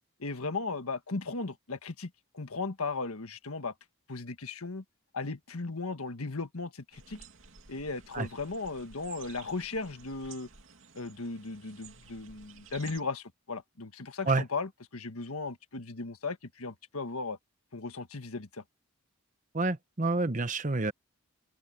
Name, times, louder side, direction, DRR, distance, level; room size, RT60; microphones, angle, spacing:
voice 1, 0.2-3.7 4.1-4.8 5.1-7.2 7.7-10.5 10.9-17.4 17.7-18.6, left 3 dB, 80° left, 1.6 m, -36 dB
sound 1, 6.9-13.0, right 6 dB, 60° right, 2.9 m, -53 dB
voice 2, 19.5-20.9, right 3 dB, 35° right, 0.9 m, -28 dB
open air
head